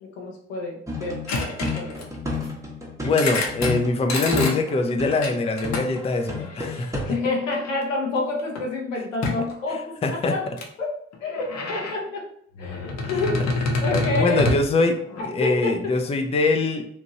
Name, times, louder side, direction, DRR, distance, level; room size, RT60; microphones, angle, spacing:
voice 1, 0.0-2.0 7.1-10.4 10.8-10.9 11.2-12.3 12.6-14.7 15.4-16.0, left 2 dB, 85° left, -1 dB, 0.6 m, -29 dB
sound 1, 0.9-4.7 5.0-5.4 5.6-7.1, left 3 dB, 10° right, 0.8 m, -30 dB
sound 2, 1.3-2.5 3.0-3.7 4.1-4.6 5.1-6.9 7.5-7.8 8.2-8.6 9.2-9.5 10.6-10.7 11.1-11.9 12.5-15.2, left 3 dB, 45° left, 0.7 m, -28 dB
voice 2, 3.0-7.2 10.0-10.3 13.9-16.9, left 3 dB, 15° left, 5 dB, 0.4 m, -23 dB
2.9 x 2.5 x 2.8 m, 0.69 s
figure-of-eight pair, 40°, 37 cm